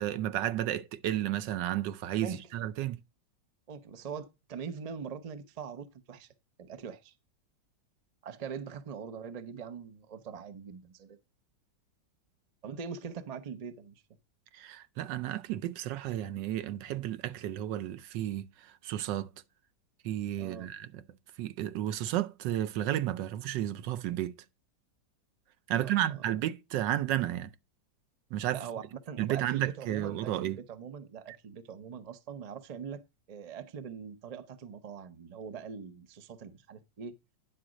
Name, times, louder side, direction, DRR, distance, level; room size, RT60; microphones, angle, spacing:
voice 1, 0.0-3.0 14.5-19.3 20.0-21.0 21.4-24.3 25.7-27.5 28.3-28.6 29.2-30.6 31.3-31.4, right 12 dB, 80° right, 1.3 m, -32 dB
voice 2, 3.7-6.3 6.6-7.1 8.2-11.2 12.6-14.0 20.4-20.7 25.7-26.2 28.5-33.0 33.3-37.2, right 6 dB, 65° right, 0.3 m, -42 dB
10.0 x 3.9 x 6.1 m
omnidirectional pair, 1.9 m